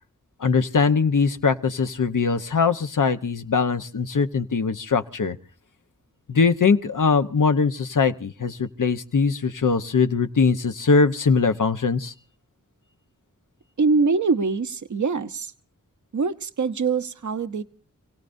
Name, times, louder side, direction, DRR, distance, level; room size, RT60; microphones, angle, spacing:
voice 1, 0.4-5.4 6.3-12.1, left 5 dB, 75° left, 8 dB, 1.0 m, -21 dB
voice 2, 13.8-15.5 16.1-17.6, right 4 dB, 65° right, 11 dB, 0.9 m, -23 dB
29.5 x 17.5 x 2.7 m, 0.40 s
wide cardioid pair, 55°, 31 cm